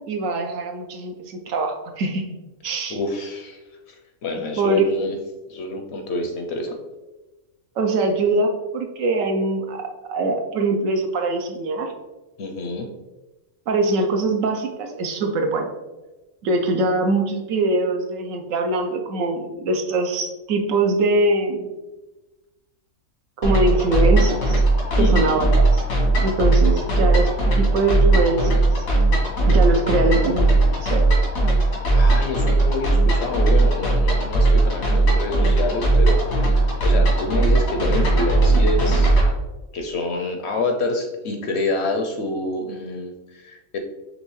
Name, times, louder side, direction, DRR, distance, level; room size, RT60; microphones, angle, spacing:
voice 1, 0.1-2.2 2.6-3.0 4.6-4.9 7.8-11.9 13.7-15.7 16.4-21.7 23.4-24.6 25.0-25.8 26.2-27.3 27.6-28.7 29.5-31.0, right 2 dB, 75° right, 4 dB, 1.0 m, -23 dB
voice 2, 2.9-3.6 3.9-4.0 4.2-5.2 5.5-6.8 12.4-12.9 25.0-25.4 31.9-39.2 39.7-43.8, left 2 dB, 65° left, 3 dB, 0.7 m, -27 dB
sound 1, 23.4-39.3, right 2 dB, 90° left, 1.6 m, -18 dB
5.3 x 3.2 x 3.1 m, 1.1 s
omnidirectional pair, 1.4 m